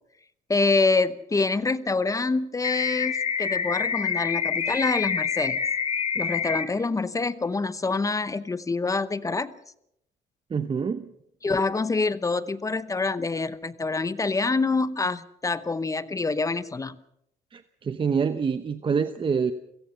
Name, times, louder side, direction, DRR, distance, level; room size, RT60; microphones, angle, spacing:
voice 1, 0.5-5.6 6.2-9.5 11.4-17.0, left 3 dB, 20° left, 15 dB, 0.8 m, -26 dB
sound 1, 2.6-6.6, left 6 dB, 40° left, 2.5 m, -27 dB
voice 2, 10.5-11.1 17.5-19.5, right 6 dB, 30° right, 10 dB, 0.9 m, -26 dB
28.0 x 18.0 x 5.7 m, 0.75 s
cardioid pair, 110°, 17 cm